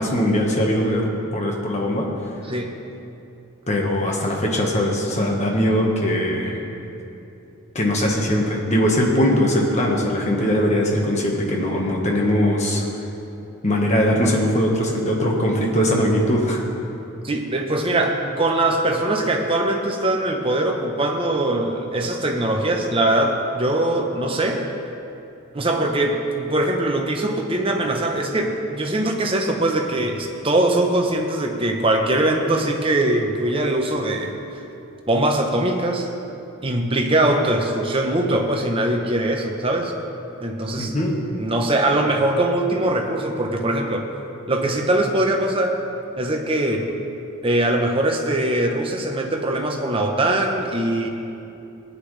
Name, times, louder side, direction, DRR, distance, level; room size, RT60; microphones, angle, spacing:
voice 1, 0.0-2.1 3.7-6.6 7.7-12.8 13.6-16.6 40.8-41.2, equal, 30° left, -1 dB, 1.3 m, -20 dB
voice 2, 2.4-2.7 17.2-24.7 25.5-34.6 35.1-36.1 36.6-39.9 40.4-40.9 41.4-44.1 44.5-45.8 46.2-46.9 47.4-51.1, right 1 dB, 25° right, 2 dB, 0.8 m, -22 dB
16.5 x 9.8 x 3.3 m, 2.8 s
head